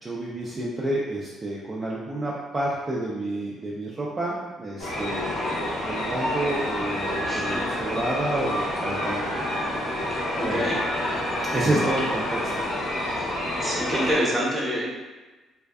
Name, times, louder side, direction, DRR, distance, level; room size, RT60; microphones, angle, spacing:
voice 1, 0.0-9.5 10.1-10.7 11.4-13.1 13.9-14.0, right 1 dB, 30° right, -5 dB, 0.4 m, -30 dB
sound 1, 4.8-14.2, left 1 dB, 85° left, 0.7 m, -28 dB
voice 2, 7.2-7.6 10.4-11.0 13.2-13.3 13.6-14.9, equal, 10° right, -6 dB, 0.8 m, -27 dB
2.5 x 2.2 x 2.2 m, 1.2 s
cardioid pair, 85°, 0 cm